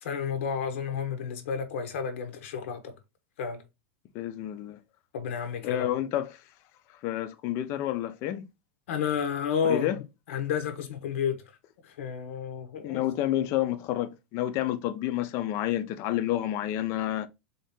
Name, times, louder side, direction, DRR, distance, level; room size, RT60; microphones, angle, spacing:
voice 1, 0.0-2.9 3.4-3.6 5.1-5.9 8.9-9.9 10.3-11.4 11.8-13.0, left 7 dB, 75° left, 0.8 m, -31 dB
voice 2, 4.1-4.8 5.6-6.4 7.0-8.5 9.6-10.0 12.8-17.3, left 13 dB, 40° left, 0.5 m, -29 dB
3.6 x 2.8 x 3.5 m
supercardioid pair, 150°, 7 cm